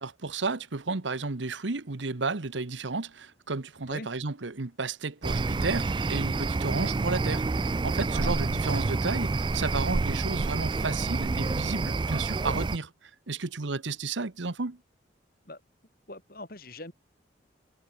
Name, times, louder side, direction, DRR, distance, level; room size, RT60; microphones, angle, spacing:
voice 1, 0.0-12.9 13.3-14.8, right 3 dB, 80° right, 1.1 m, -32 dB
sound 1, 5.2-12.8, right 3 dB, 25° right, 0.3 m, -28 dB
voice 2, 8.0-8.3 15.5-15.6 16.1-16.9, left 2 dB, 50° left, 6.0 m, -42 dB
head